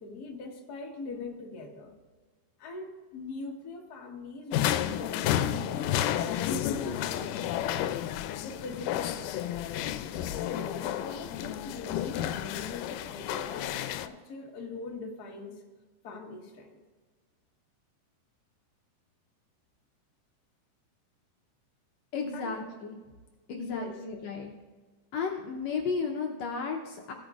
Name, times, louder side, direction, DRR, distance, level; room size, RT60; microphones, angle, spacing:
voice 1, 0.0-2.0 2.6-8.0 8.4-9.6 10.5-15.6 16.0-16.8 22.3-22.6 23.6-24.0, left 3 dB, 50° left, 0 dB, 1.2 m, -42 dB
sound 1, 4.5-14.1, left 11 dB, 85° left, 2.1 m, -31 dB
voice 2, 22.1-23.0 23.5-24.5 25.1-27.1, left 5 dB, 70° left, 1 dB, 1.8 m, -33 dB
16.5 x 9.1 x 2.4 m, 1.4 s
omnidirectional pair, 3.7 m